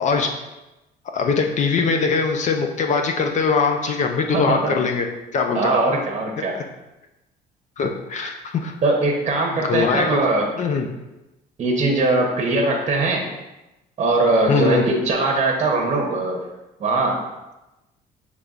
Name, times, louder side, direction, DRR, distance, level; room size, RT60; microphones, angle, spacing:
voice 1, 1.1-5.1 5.3-5.7 7.8-8.7 9.6-10.2 10.6-10.9 14.5-14.8, left 5 dB, 45° left, 4 dB, 0.5 m, -21 dB
voice 2, 4.3-4.8 5.5-6.5 8.8-10.5 11.6-13.3 14.0-16.4 16.8-17.2, right 2 dB, 40° right, 0 dB, 0.8 m, -20 dB
6.6 x 3.3 x 2.4 m, 0.99 s
cardioid pair, 110°, 17 cm